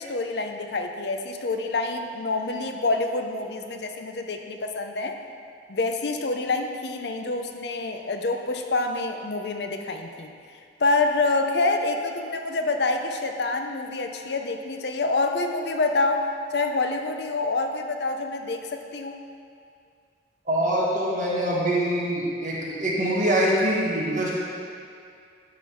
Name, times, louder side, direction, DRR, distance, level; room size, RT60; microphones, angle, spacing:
voice 1, 0.0-5.2 5.7-10.3 10.8-19.2, left 3 dB, 60° left, 5 dB, 0.6 m, -27 dB
voice 2, 20.5-24.3, right 1 dB, 45° right, -6 dB, 1.8 m, -24 dB
11.0 x 3.9 x 6.2 m, 2.4 s
head